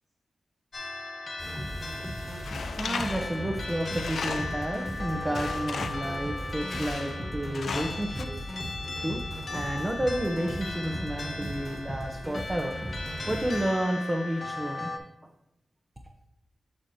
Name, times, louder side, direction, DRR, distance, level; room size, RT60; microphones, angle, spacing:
sound 1, 0.7-15.0, left 2 dB, 70° left, 1.3 m, -38 dB
sound 2, 1.4-13.6, equal, 5° left, 1.6 m, -37 dB
voice 1, 2.1-8.5 9.0-9.2 9.5-12.8 13.3-14.9, right 1 dB, 25° right, 1 dB, 0.9 m, -31 dB
Tools, 2.4-4.7 5.3-6.1 6.7-7.3 7.5-8.2, left 5 dB, 85° left, 0.4 m, -36 dB
8.7 x 6.3 x 2.8 m, 0.90 s
cardioid pair, 50°, 0 cm